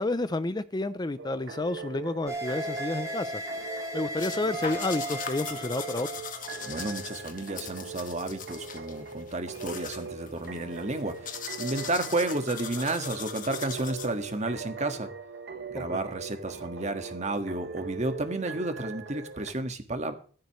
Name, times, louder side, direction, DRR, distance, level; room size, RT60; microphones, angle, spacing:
voice 1, 0.0-6.1 15.7-16.0, left 2 dB, 20° left, 0.5 m, -30 dB
sound 1, 1.2-19.5, right 5 dB, 60° right, 1.3 m, -41 dB
sound 2, 2.3-7.6, right 1 dB, 15° right, 4.0 m, -37 dB
sound 3, 4.2-14.4, left 7 dB, 45° left, 1.8 m, -41 dB
voice 2, 6.6-15.1 15.7-20.1, right 2 dB, 35° right, 1.8 m, -32 dB
15.5 x 12.5 x 3.2 m
head